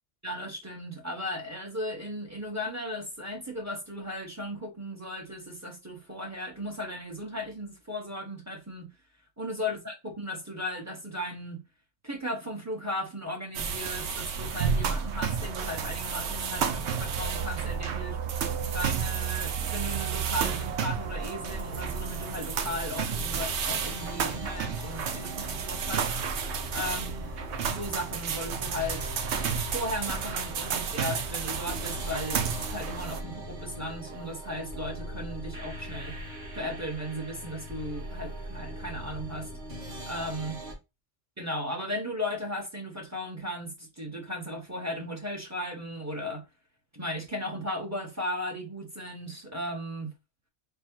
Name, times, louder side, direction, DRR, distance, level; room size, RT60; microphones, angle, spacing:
voice 1, 0.2-8.9 9.4-11.6 12.0-18.2 18.7-26.1 26.7-27.3 27.7-29.1 29.7-36.2 36.6-39.5 40.1-40.6 41.4-46.4 46.9-50.1, left 1 dB, 15° right, 0.7 m, -36 dB
sound 1, 13.5-33.2, right 6 dB, 70° right, 0.9 m, -32 dB
sound 2, 21.4-40.7, right 1 dB, 40° right, 1.6 m, -40 dB
3.4 x 2.1 x 4.3 m
omnidirectional pair, 1.2 m